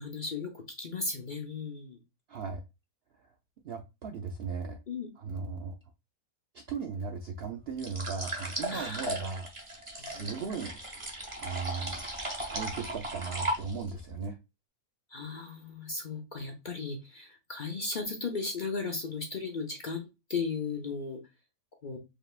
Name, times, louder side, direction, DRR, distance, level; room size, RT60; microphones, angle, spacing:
voice 1, 0.0-2.0 4.9-5.1 8.7-9.1 9.9-10.4 15.1-21.2 21.8-22.0, left 4 dB, 40° left, 3 dB, 0.7 m, -36 dB
voice 2, 2.3-2.6 3.2-3.3 3.6-4.8 5.2-5.7 6.5-9.5 9.7-10.8 11.1-12.0 12.5-14.4, right 5 dB, 65° right, 4 dB, 0.6 m, -37 dB
sound 1, 7.8-14.0, right 1 dB, 20° right, 1.2 m, -36 dB
4.9 x 3.3 x 2.4 m, 0.25 s
omnidirectional pair, 1.6 m